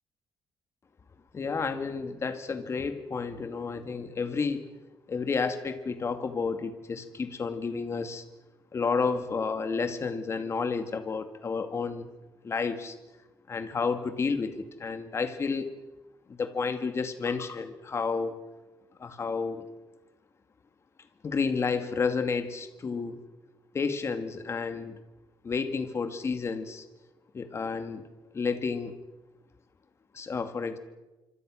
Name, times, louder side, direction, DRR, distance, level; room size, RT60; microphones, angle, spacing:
voice 1, 1.3-4.7 5.1-8.2 8.7-12.1 12.4-13.0 13.5-15.7 16.3-18.4 19.0-19.6 21.2-23.2 23.7-25.0 25.4-26.8 27.3-28.0 28.3-29.0 30.1-30.8, left 5 dB, 30° left, 8 dB, 2.3 m, -31 dB
26.5 x 25.0 x 6.5 m, 1.1 s
cardioid pair, 145°, 9 cm